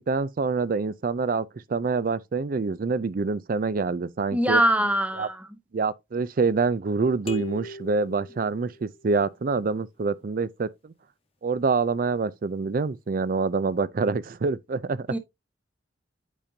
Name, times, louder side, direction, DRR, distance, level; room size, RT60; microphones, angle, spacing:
voice 1, 0.1-4.6 5.2-5.3 5.7-10.9 11.4-15.1, right 4 dB, 45° right, 0.4 m, -26 dB
voice 2, 4.3-5.4 15.1-15.2, right 1 dB, 5° right, 0.7 m, -22 dB
sound 1, 7.3-9.2, equal, 30° left, 1.1 m, -39 dB
8.5 x 5.1 x 2.7 m
head